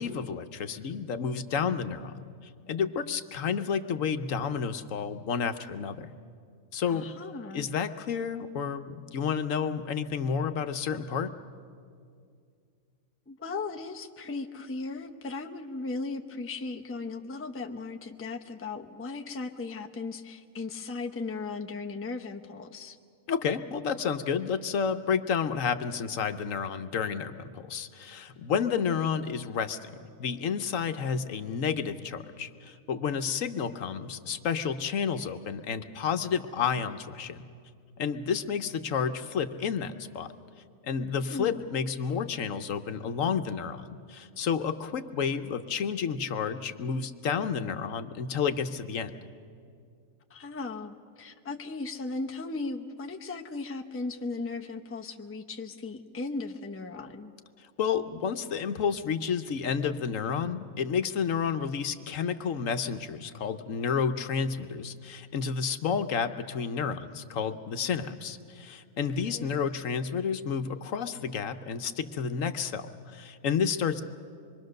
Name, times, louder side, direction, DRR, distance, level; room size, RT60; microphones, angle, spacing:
voice 1, 0.0-2.2 2.7-6.1 6.7-7.1 7.5-11.3 23.3-29.9 30.2-37.4 38.0-40.3 40.8-49.1 57.8-74.0, left 6 dB, 70° left, 9 dB, 1.2 m, -30 dB
voice 2, 6.9-7.7 13.3-23.0 41.3-41.6 50.3-57.3 69.3-69.6, left 3 dB, 10° left, 3 dB, 0.7 m, -37 dB
25.5 x 23.0 x 6.5 m, 2.3 s
omnidirectional pair, 1.4 m